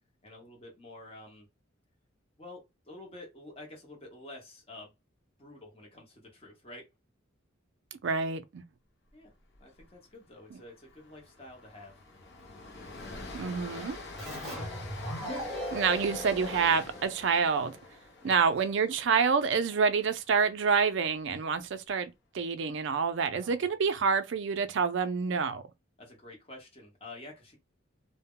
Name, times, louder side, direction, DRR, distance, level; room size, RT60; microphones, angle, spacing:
voice 1, 0.2-1.5 2.4-4.9 5.4-6.9 9.1-9.3 9.6-11.9 15.3-15.6 18.2-18.4 23.4-23.7 26.0-27.6, left 2 dB, 30° left, 0.9 m, -49 dB
voice 2, 8.0-8.6 13.3-14.0 15.7-17.8 18.2-25.6, right 5 dB, 65° right, 0.4 m, -27 dB
Train, 9.5-9.8 10.1-10.2 10.6-20.8, left 3 dB, 55° left, 0.6 m, -46 dB
Keyboard (musical), 14.2-17.6, equal, ahead, 1.0 m, -39 dB
2.1 x 2.1 x 3.6 m
head